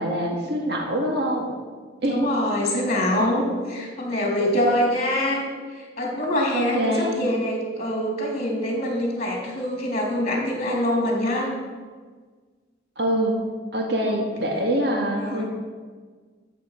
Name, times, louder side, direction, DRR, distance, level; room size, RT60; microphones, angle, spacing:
voice 1, 0.0-1.5 2.0-2.3 4.4-4.5 6.5-7.3 13.0-13.4 13.7-15.4, equal, 60° right, 0 dB, 1.8 m, -24 dB
voice 2, 2.1-11.5 14.0-14.2 15.2-15.5, left 1 dB, 35° left, -1 dB, 3.2 m, -25 dB
13.0 x 7.4 x 5.9 m, 1.5 s
head